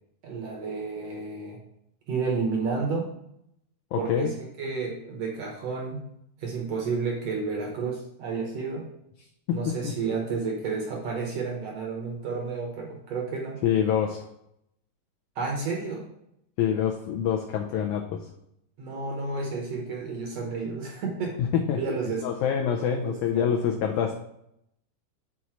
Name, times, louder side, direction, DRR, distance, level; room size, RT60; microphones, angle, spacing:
voice 1, 0.2-1.6 2.1-3.1 3.9-6.1 6.4-8.9 9.5-13.6 15.3-16.0 18.8-21.4 21.8-22.3 22.8-23.5, right 4 dB, 70° right, 0 dB, 1.5 m, -31 dB
voice 2, 3.9-4.3 9.5-9.6 9.8-9.9 13.6-14.3 16.6-18.0 21.4-21.8 22.2-24.2, left 8 dB, 85° left, 2 dB, 1.7 m, -25 dB
6.2 x 4.1 x 5.9 m, 0.77 s
omnidirectional pair, 4.1 m